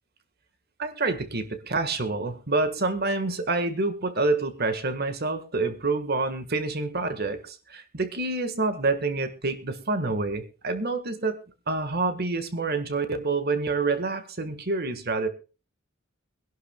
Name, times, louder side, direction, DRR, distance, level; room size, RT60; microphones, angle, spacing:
voice 1, 0.8-11.4 11.7-15.3, right 3 dB, 50° right, 10 dB, 1.6 m, -27 dB
23.0 x 11.5 x 2.3 m, 0.33 s
head